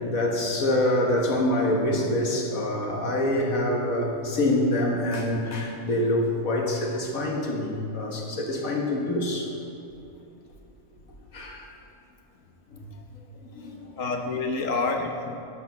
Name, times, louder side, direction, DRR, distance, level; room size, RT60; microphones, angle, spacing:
voice 1, 0.0-9.5 11.3-11.6 13.6-13.9, left 1 dB, 85° left, 0 dB, 1.9 m, -25 dB
voice 2, 12.7-13.2 14.0-15.4, left 3 dB, 70° left, 3 dB, 1.4 m, -29 dB
12.0 x 5.5 x 7.1 m, 2.6 s
omnidirectional pair, 1.4 m